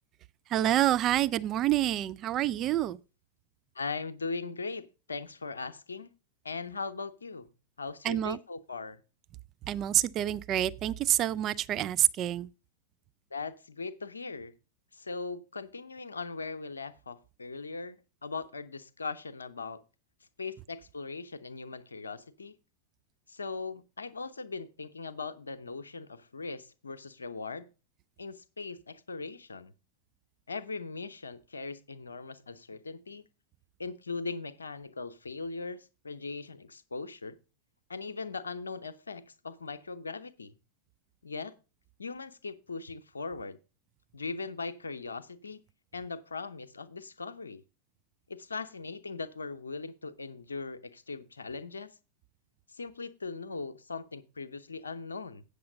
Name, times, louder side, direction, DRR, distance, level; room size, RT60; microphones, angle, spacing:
voice 1, 0.5-3.0 8.0-8.4 9.6-12.5, right 12 dB, 35° right, 0.4 m, -27 dB
voice 2, 3.7-6.1 6.4-7.5 7.8-9.0 13.3-14.5 14.9-18.0 18.2-19.8 20.4-22.6 23.3-27.7 28.2-29.7 30.5-33.2 33.8-37.4 37.9-40.6 41.2-41.6 42.0-43.6 44.1-45.6 45.9-47.6 48.3-51.9 52.7-55.4, left 4 dB, 75° left, 0.7 m, -39 dB
8.6 x 6.7 x 5.1 m
figure-of-eight pair, 90°, 0 cm